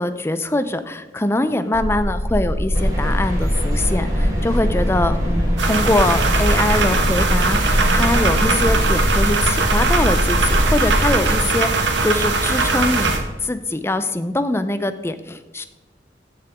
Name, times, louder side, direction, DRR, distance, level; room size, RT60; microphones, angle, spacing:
voice 1, 0.0-15.7, left 1 dB, 15° left, 11 dB, 0.5 m, -23 dB
sound 1, 1.7-11.4, equal, 40° left, 2.5 m, -22 dB
sound 2, 2.7-11.2, equal, 20° right, 3.2 m, -29 dB
sound 3, 5.6-13.2, right 3 dB, 85° right, 1.4 m, -20 dB
14.5 x 6.7 x 3.6 m, 1.2 s
head